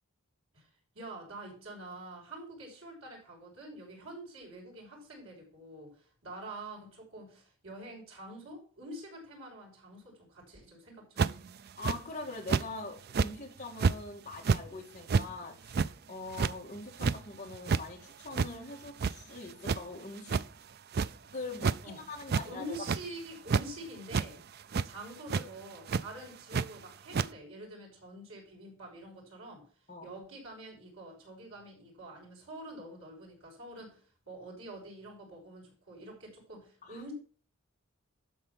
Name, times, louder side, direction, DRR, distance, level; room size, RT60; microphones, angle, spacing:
voice 1, 0.9-11.3 21.8-22.0 22.5-24.4 24.8-29.6 30.0-34.0 34.3-37.1, right 1 dB, 75° right, 6.1 m, -46 dB
sound 1, 11.2-11.5 11.8-12.0 12.5-12.7 13.1-13.3 13.8-14.0 14.3-14.6 15.1-15.3 15.7-15.9 16.3-16.5 17.0-17.2 17.5-17.8 18.3-18.5 18.9-19.4 19.6-19.8 20.3-20.4 20.9-21.1 21.5-21.8 22.2-22.5 22.7-23.0 23.5-23.6 24.1-24.3 24.7-24.9 25.3-25.4 25.9-26.0 26.5-26.6 27.1-27.3, right 5 dB, 45° right, 0.4 m, -28 dB
voice 2, 11.7-20.4 21.3-22.9 29.9-30.1 36.8-37.0, left 3 dB, 35° left, 2.5 m, -43 dB
12.5 x 4.4 x 6.0 m
head